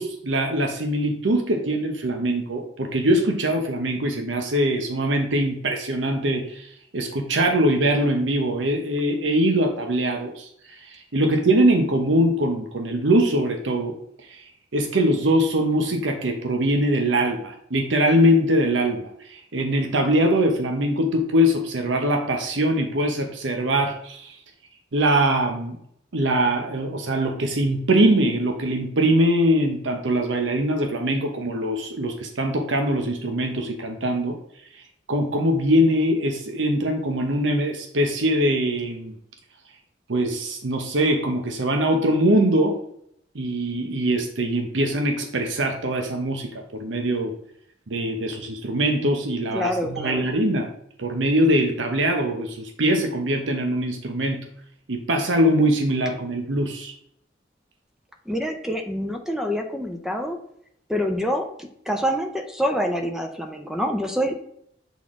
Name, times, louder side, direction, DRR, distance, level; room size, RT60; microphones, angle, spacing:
voice 1, 0.0-10.5 10.8-13.9 14.2-14.4 14.7-24.4 24.9-25.8 26.1-34.4 34.7-34.8 35.1-39.1 40.1-42.8 43.3-47.3 47.9-50.7 51.0-54.5 54.9-56.9, right 1 dB, 80° right, 4 dB, 0.8 m, -22 dB
voice 2, 49.5-50.3 58.3-60.4 60.9-64.3, equal, 5° right, 4 dB, 0.6 m, -26 dB
8.1 x 4.1 x 3.6 m, 0.70 s
head